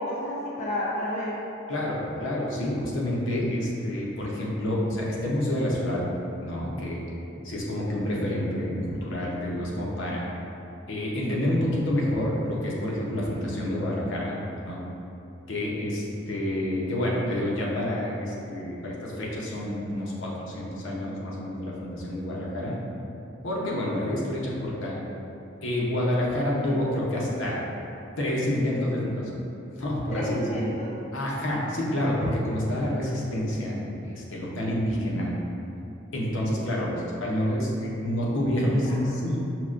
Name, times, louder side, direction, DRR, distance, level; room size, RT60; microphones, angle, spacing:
voice 1, 0.0-1.4 23.6-24.3 26.5-26.8 30.1-30.9 38.6-39.0, left 1 dB, 35° left, -6 dB, 0.4 m, -32 dB
voice 2, 1.7-6.0 6.4-7.0 7.4-10.3 10.9-14.4 14.6-14.8 15.5-20.3 20.5-22.8 23.4-25.0 25.6-27.6 28.2-29.2 29.8-30.6 31.1-33.8 34.1-35.3 36.1-39.4, left 1 dB, 70° left, -4 dB, 0.7 m, -28 dB
5.8 x 2.1 x 2.4 m, 2.9 s
head